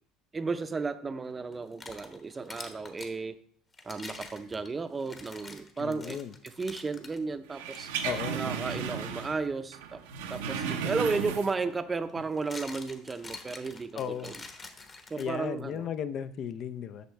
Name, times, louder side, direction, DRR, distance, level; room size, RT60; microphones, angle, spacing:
voice 1, 0.3-3.4 3.8-6.2 6.4-7.9 8.3-10.0 10.3-14.4 15.1-15.9, right 4 dB, 25° right, 11 dB, 0.6 m, -34 dB
sound 1, 1.5-3.2 3.7-7.2 7.7-7.8 8.5-8.7 10.8-10.9 12.1-15.6, left 3 dB, 30° left, 1.1 m, -46 dB
voice 2, 5.8-6.3 8.0-8.4 13.9-14.3 15.2-17.1, left 8 dB, 50° left, 12 dB, 0.5 m, -35 dB
sound 2, 7.5-9.5 9.7-11.7 12.1-12.2, right 6 dB, 85° right, 0.8 m, -34 dB
8.1 x 6.1 x 3.2 m, 0.62 s
hypercardioid pair, 80°, 0 cm